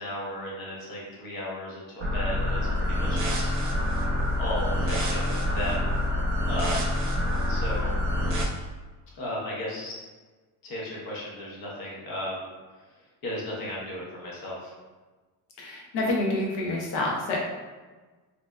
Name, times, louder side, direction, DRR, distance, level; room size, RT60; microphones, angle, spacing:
voice 1, 0.0-3.5 4.4-5.9 6.4-7.0 7.5-8.0 9.1-9.9 10.6-12.5 13.2-14.7, left 1 dB, 65° left, -5 dB, 1.1 m, -35 dB
sound 1, 2.0-8.4, left 1 dB, 35° right, 0.6 m, -26 dB
voice 2, 15.6-17.4, left 2 dB, 90° left, -2 dB, 0.8 m, -28 dB
3.2 x 2.7 x 2.3 m, 1.3 s
cardioid pair, 135°, 39 cm